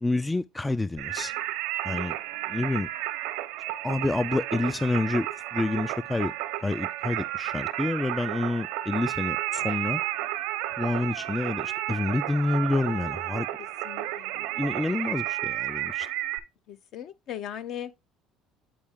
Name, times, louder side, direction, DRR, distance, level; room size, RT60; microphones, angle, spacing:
voice 1, 0.0-1.3 1.8-2.2 2.5-2.9 3.8-5.3 5.5-6.3 6.6-10.0 10.8-13.5 14.6-16.1, left 2 dB, 10° left, 0.3 m, -28 dB
Singing, 1.0-16.4, right 15 dB, 85° right, 0.8 m, -32 dB
voice 2, 13.8-14.3 16.7-17.9, left 10 dB, 60° left, 0.8 m, -38 dB
8.7 x 4.3 x 3.6 m
cardioid pair, 110°, 0 cm